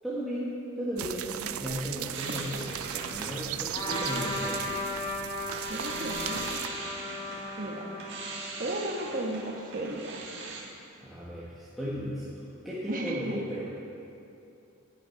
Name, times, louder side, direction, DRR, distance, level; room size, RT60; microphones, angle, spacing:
voice 1, 0.0-4.8 11.0-12.3 12.6-13.6, equal, ahead, -10 dB, 1.4 m, -35 dB
sound 1, 1.0-6.7, right 11 dB, 80° right, 0.4 m, -37 dB
sound 2, 2.1-10.6, right 3 dB, 55° right, 1.8 m, -40 dB
Trumpet, 3.7-9.6, left 2 dB, 20° left, 1.5 m, -37 dB
voice 2, 5.7-6.6 7.6-7.9 8.6-10.2 12.9-13.4, right 1 dB, 40° right, 1 dB, 1.3 m, -34 dB
10.0 x 9.7 x 5.8 m, 2.7 s
head